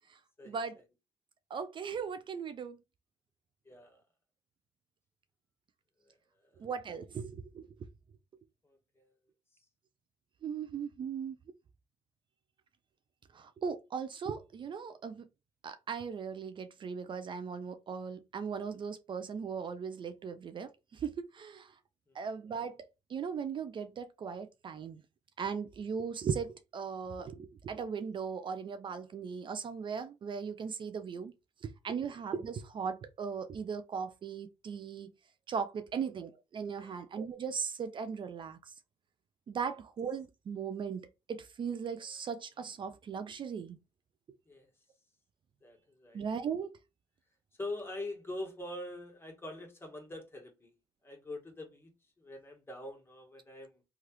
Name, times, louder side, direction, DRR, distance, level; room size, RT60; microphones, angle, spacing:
voice 1, 0.5-0.8 1.5-2.8 6.6-7.7 10.4-11.4 13.3-15.2 15.6-21.7 22.1-25.0 25.4-31.3 31.6-35.1 35.5-38.7 39.5-43.8 46.1-46.7, right 6 dB, 50° right, 0.4 m, -38 dB
voice 2, 3.6-4.0 6.0-6.7 8.6-9.1 9.5-9.7 22.1-22.2 32.0-32.2 36.8-37.0 44.4-44.7 45.6-46.2 47.6-50.7 51.0-51.9 52.2-53.8, left 1 dB, 20° left, 1.3 m, -44 dB
3.1 x 2.3 x 2.9 m
supercardioid pair, 55°, 11 cm